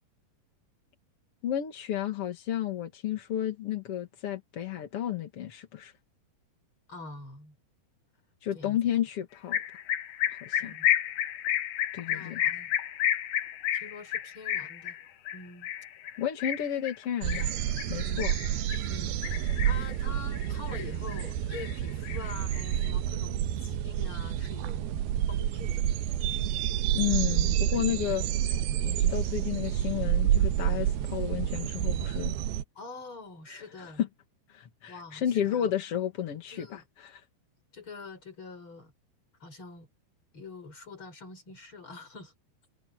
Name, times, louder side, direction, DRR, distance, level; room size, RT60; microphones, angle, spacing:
voice 1, 1.4-5.9 8.4-9.6 10.4-10.8 11.9-12.4 16.2-17.5 17.9-18.3 26.9-28.2 28.8-32.3 33.6-33.7 34.0-34.1 34.5-37.2, left 10 dB, 50° left, 1.9 m, -32 dB
voice 2, 6.9-7.6 8.5-8.8 10.6-10.9 12.1-12.8 13.7-15.0 15.3-15.7 18.0-18.3 18.9-19.2 19.6-24.9 25.3-25.9 32.8-34.0 34.9-35.7 36.5-36.8 37.7-38.9 39.4-39.9 40.3-42.3, left 4 dB, 30° left, 7.0 m, -45 dB
sound 1, 9.5-18.9 19.2-19.9 20.3-21.2 21.5-22.9, left 11 dB, 75° left, 1.8 m, -31 dB
sound 2, 17.2-32.6, right 11 dB, 70° right, 2.7 m, -29 dB
omnidirectional pair, 4.8 m